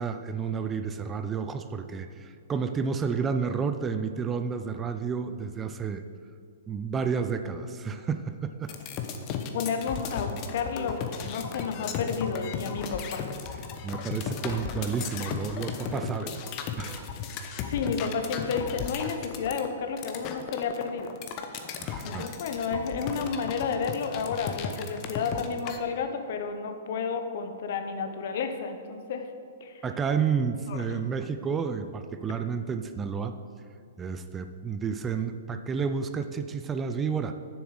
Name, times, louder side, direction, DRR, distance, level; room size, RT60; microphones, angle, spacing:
voice 1, 0.0-6.0 6.7-8.7 13.8-17.1 21.8-22.3 29.8-33.3 34.0-37.3, right 6 dB, 20° right, 8 dB, 0.5 m, -31 dB
sound 1, 8.7-25.8, left 6 dB, 35° left, 0.9 m, -35 dB
voice 2, 9.5-13.3 17.6-21.2 22.0-29.3 29.6-29.7 30.7-30.8, left 5 dB, 55° left, 7 dB, 1.0 m, -31 dB
7.2 x 7.0 x 6.5 m, 2.3 s
hypercardioid pair, 120°, 0 cm